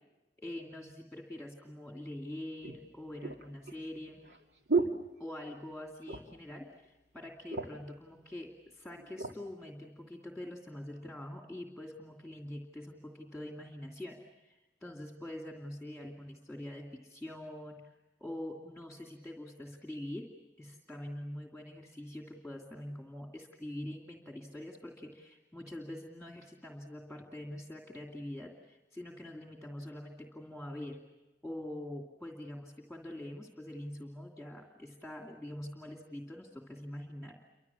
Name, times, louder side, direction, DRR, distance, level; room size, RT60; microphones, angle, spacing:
voice 1, 0.4-4.2 5.2-17.9 18.2-20.3 20.6-31.1 31.4-37.4, left 1 dB, ahead, 0 dB, 2.6 m, -44 dB
sound 1, 1.7-1.8 2.6-5.7 6.0-6.5 6.8-6.9 7.2-7.9 8.6-9.4 10.0-10.2, right 4 dB, 80° right, 2.4 m, -36 dB
29.5 x 25.5 x 7.2 m, 1.0 s
head